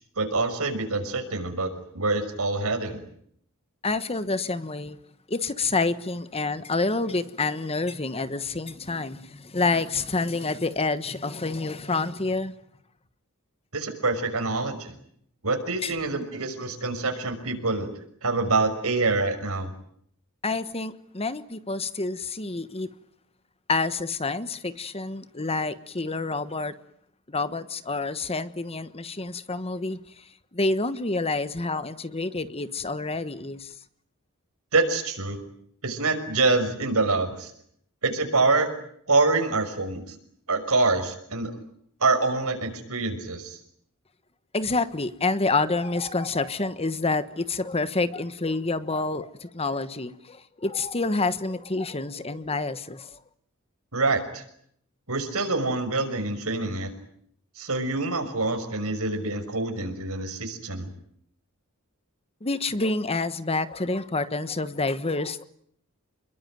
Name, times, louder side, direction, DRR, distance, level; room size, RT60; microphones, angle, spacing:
voice 1, 0.2-3.0 13.7-14.9 15.4-17.9 18.2-19.7 34.7-35.4 35.8-37.5 38.0-38.7 39.1-40.0 40.5-41.6 42.0-43.6 53.9-54.4 55.1-56.9 57.6-60.9, right 3 dB, 75° right, 5.9 m, -26 dB
voice 2, 3.8-5.0 5.3-12.5 15.8-15.9 20.4-22.9 23.7-26.7 27.3-30.2 30.5-33.7 44.5-53.2 62.4-65.4, left 3 dB, 25° left, 1.2 m, -28 dB
29.0 x 22.0 x 9.3 m
head